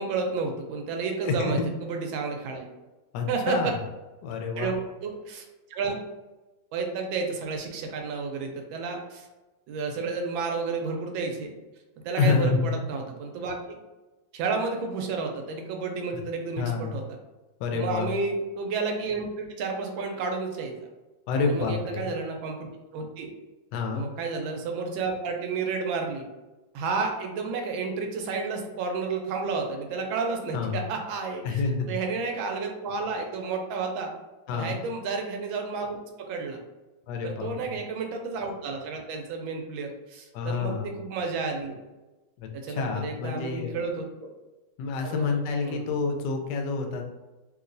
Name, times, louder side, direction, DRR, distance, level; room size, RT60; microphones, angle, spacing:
voice 1, 0.0-2.7 3.3-3.7 4.6-4.8 5.0-5.4 5.7-6.0 6.7-9.3 9.7-11.5 12.0-13.8 14.3-17.0 17.7-20.7 21.4-23.3 23.9-26.2 26.7-31.6 31.9-34.1 34.5-36.6 37.2-41.8 42.5-44.3 45.0-45.8, right 4 dB, 80° right, 3 dB, 1.3 m, -31 dB
voice 2, 1.2-1.7 3.1-3.8 4.2-4.7 12.2-12.7 16.1-16.2 16.6-16.9 17.6-18.1 21.3-22.1 23.7-24.0 30.5-30.8 31.4-32.0 34.5-34.8 37.1-37.8 40.3-40.9 42.4-43.7 44.8-47.1, left 4 dB, 75° left, 3 dB, 1.0 m, -28 dB
3.1 x 2.9 x 2.5 m, 1.1 s
omnidirectional pair, 2.2 m